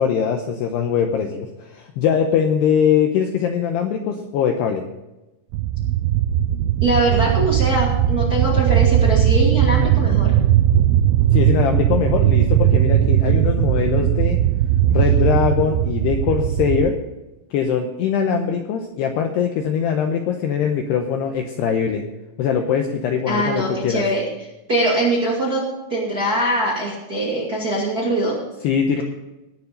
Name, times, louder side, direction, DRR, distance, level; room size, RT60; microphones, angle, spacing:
voice 1, 0.0-4.8 11.3-14.4 14.9-17.0 17.5-22.0 22.4-24.0 28.6-29.0, left 7 dB, 85° left, 4 dB, 2.4 m, -21 dB
sound 1, 5.5-16.9, right 11 dB, 85° right, 2.6 m, -18 dB
voice 2, 6.8-10.3 23.3-24.2 24.7-28.4, right 1 dB, 35° right, -4 dB, 1.6 m, -22 dB
19.5 x 7.1 x 5.4 m, 1.0 s
omnidirectional pair, 5.8 m